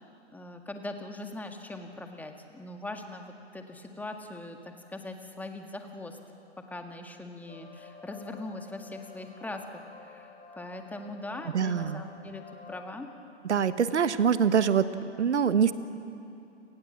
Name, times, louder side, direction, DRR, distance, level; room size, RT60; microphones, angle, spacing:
voice 1, 0.3-6.2 6.7-13.1, left 2 dB, 5° left, 4 dB, 1.9 m, -41 dB
sound 1, 7.5-12.8, left 5 dB, 25° left, 4.5 m, -49 dB
voice 2, 11.5-12.0 13.4-14.9 15.2-15.7, right 7 dB, 75° right, 13 dB, 1.3 m, -24 dB
29.5 x 19.5 x 7.5 m, 2.8 s
figure-of-eight pair, 110°, 35 cm